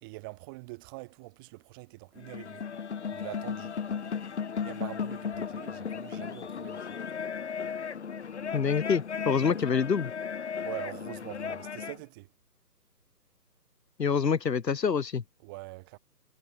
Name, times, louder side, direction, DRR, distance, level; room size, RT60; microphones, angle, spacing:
voice 1, 0.0-2.7 3.1-3.8 4.6-6.9 9.4-9.8 10.6-12.3 15.4-16.0, right 25 dB, 15° right, 1.8 m, -44 dB
sound 1, 2.2-12.0, left 6 dB, 45° left, 0.9 m, -36 dB
voice 2, 8.5-10.1 14.0-15.2, left 6 dB, 85° left, 0.9 m, -26 dB
figure-of-eight pair, 145°, 48 cm